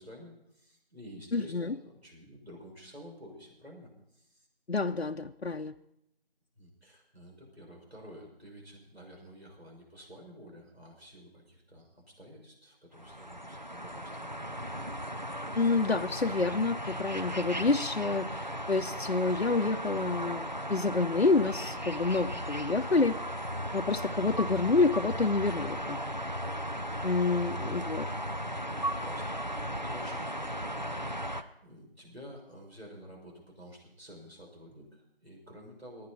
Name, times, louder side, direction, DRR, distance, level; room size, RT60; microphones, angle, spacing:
voice 1, 0.0-4.5 6.6-14.6 27.6-27.9 28.8-36.1, equal, 85° right, -1 dB, 6.0 m, -50 dB
voice 2, 1.3-1.7 4.7-5.7 15.6-18.3 18.7-23.2 23.7-26.0 27.0-28.0, left 3 dB, 80° left, 5 dB, 0.7 m, -28 dB
sound 1, 12.9-31.4, equal, 45° right, 0.7 m, -36 dB
26.5 x 9.7 x 4.2 m, 0.78 s
figure-of-eight pair, 175°, 31 cm